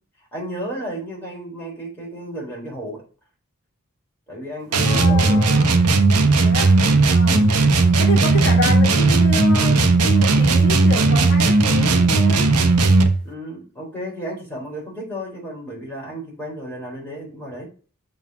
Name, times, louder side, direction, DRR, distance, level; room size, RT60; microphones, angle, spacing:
voice 1, 0.3-3.0 4.3-5.5 7.2-7.6 13.2-17.7, equal, 10° left, -4 dB, 3.6 m, -33 dB
sound 1, 4.7-13.2, right 3 dB, 90° right, 1.0 m, -16 dB
voice 2, 4.8-5.7 6.3-6.8 7.0-7.5 8.0-12.5, left 2 dB, 50° left, 3 dB, 1.5 m, -29 dB
6.2 x 4.0 x 6.0 m, 0.37 s
head